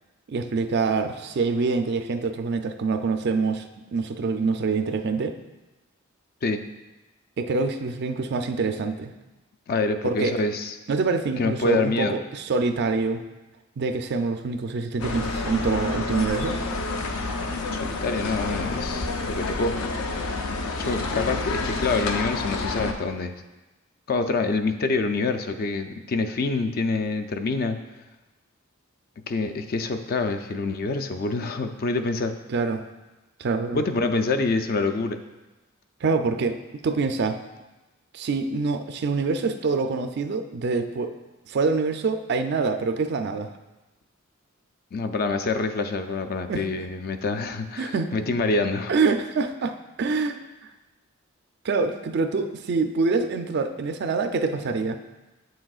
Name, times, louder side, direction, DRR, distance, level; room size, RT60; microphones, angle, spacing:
voice 1, 0.3-5.3 7.4-9.1 10.0-10.4 10.9-13.2 13.8-16.6 32.5-32.8 33.4-33.8 36.0-37.4 38.1-41.1 41.5-43.5 46.5-46.6 47.8-48.1 48.9-50.4 51.6-55.0, right 4 dB, 55° right, 7 dB, 0.4 m, -25 dB
voice 2, 9.7-10.7 11.4-12.2 17.7-19.8 20.8-23.3 24.1-27.8 29.3-32.3 33.7-35.2 44.9-48.9, left 3 dB, 45° left, 8 dB, 0.4 m, -26 dB
sound 1, 15.0-22.9, left 3 dB, 85° left, 0.6 m, -29 dB
7.9 x 6.2 x 2.4 m, 1.1 s
head